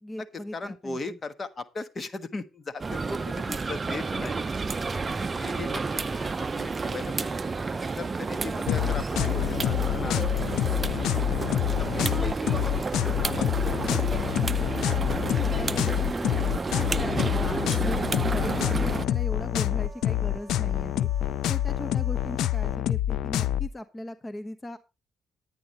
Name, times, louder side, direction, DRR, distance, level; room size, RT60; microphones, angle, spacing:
voice 1, 0.0-1.2 5.4-5.8 15.1-21.1 21.5-24.8, left 1 dB, 20° left, 8 dB, 1.1 m, -38 dB
voice 2, 0.5-4.4 5.4-7.3 7.9-11.0 11.7-12.9 13.2-13.9 21.2-21.4, left 3 dB, 35° left, 11 dB, 1.3 m, -38 dB
sound 1, 2.8-19.1, right 4 dB, 30° right, 0.6 m, -30 dB
sound 2, 8.7-23.7, left 12 dB, 80° left, 0.5 m, -27 dB
sound 3, 11.6-22.8, right 2 dB, 5° left, 3.4 m, -49 dB
11.0 x 9.4 x 4.1 m, 0.27 s
cardioid pair, 90°, 0 cm